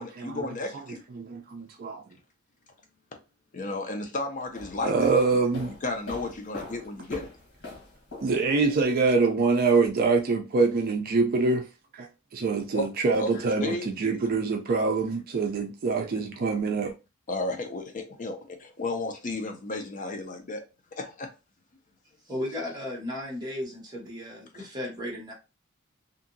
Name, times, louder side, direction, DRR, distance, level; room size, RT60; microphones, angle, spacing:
voice 1, 0.0-1.0 3.5-5.4 5.8-7.3 12.7-12.9 13.2-13.3 13.6-13.9 17.3-20.6 20.9-21.3, left 2 dB, 40° left, 0.5 m, -33 dB
voice 2, 1.2-2.0 4.8-5.8 8.2-11.7 12.0-12.1 12.3-16.9, right 4 dB, 45° right, 0.4 m, -24 dB
sound 1, 4.4-9.2, left 2 dB, 75° left, 1.3 m, -43 dB
voice 3, 22.2-25.3, left 1 dB, 20° right, 1.2 m, -35 dB
2.8 x 2.6 x 2.6 m
head